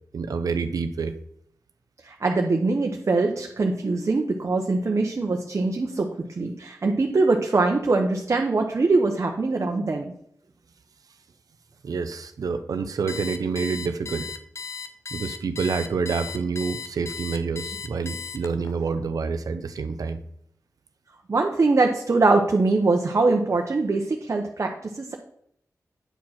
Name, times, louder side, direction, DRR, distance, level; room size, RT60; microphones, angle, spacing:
voice 1, 0.1-1.2 11.8-14.3 15.1-20.2, right 5 dB, 85° right, 9 dB, 0.6 m, -28 dB
voice 2, 2.0-10.1 21.3-25.1, right 3 dB, 50° right, 2 dB, 0.9 m, -23 dB
Alarm, 13.1-18.7, left 5 dB, 50° left, 0.7 m, -36 dB
9.1 x 4.5 x 5.9 m, 0.70 s
wide cardioid pair, 70°, 6 cm